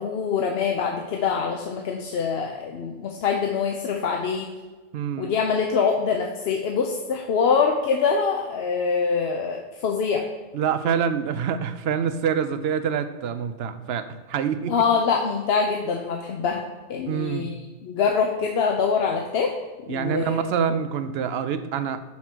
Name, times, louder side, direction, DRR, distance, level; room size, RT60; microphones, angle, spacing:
voice 1, 0.0-4.5 5.2-10.2 14.7-16.6 16.9-17.5 17.8-19.5 19.8-20.4, left 5 dB, 70° left, 2 dB, 0.9 m, -24 dB
voice 2, 4.9-5.3 10.5-14.7 17.1-17.5 19.9-22.0, right 7 dB, 75° right, 11 dB, 0.8 m, -26 dB
6.0 x 5.7 x 4.5 m, 1.3 s
omnidirectional pair, 1.1 m